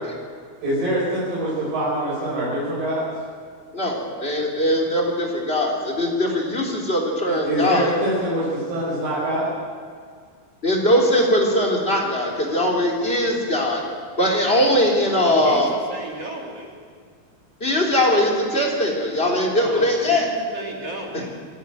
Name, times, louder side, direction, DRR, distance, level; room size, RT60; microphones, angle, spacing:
voice 1, 0.6-3.1 7.3-9.5, right 1 dB, 65° right, -8 dB, 7.1 m, -24 dB
voice 2, 3.7-7.9 10.6-13.8 14.2-15.7 17.6-20.3, left 1 dB, 15° left, 0 dB, 3.2 m, -20 dB
voice 3, 15.2-16.7 19.6-21.3, right 1 dB, 40° right, -1 dB, 3.5 m, -34 dB
26.5 x 11.0 x 9.2 m, 2.1 s
omnidirectional pair, 4.3 m